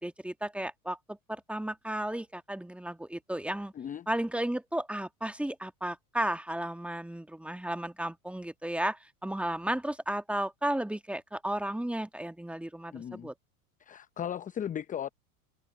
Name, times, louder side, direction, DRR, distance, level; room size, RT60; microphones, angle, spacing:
voice 1, 0.0-3.7 4.1-13.3, right 1 dB, 5° right, 1.6 m, -34 dB
voice 2, 3.7-4.1 12.9-13.3 13.8-15.1, left 9 dB, 20° left, 0.6 m, -36 dB
hypercardioid pair, 90°, 43 cm